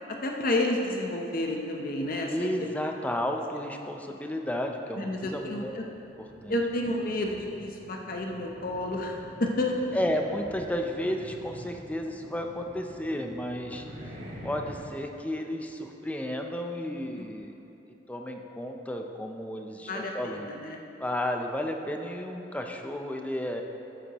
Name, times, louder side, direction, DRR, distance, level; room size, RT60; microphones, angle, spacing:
voice 1, 0.1-2.7 5.0-5.8 6.5-10.0 17.2-17.3 19.9-20.8, left 1 dB, 50° left, 1 dB, 0.8 m, -30 dB
voice 2, 2.2-5.7 6.4-6.6 9.9-13.8 14.4-17.5 17.9-20.5 21.0-23.6, left 1 dB, 10° left, 3 dB, 0.5 m, -32 dB
sound 1, 4.9-14.8, equal, 60° right, 2.1 m, -47 dB
12.5 x 8.3 x 3.0 m, 2.8 s
head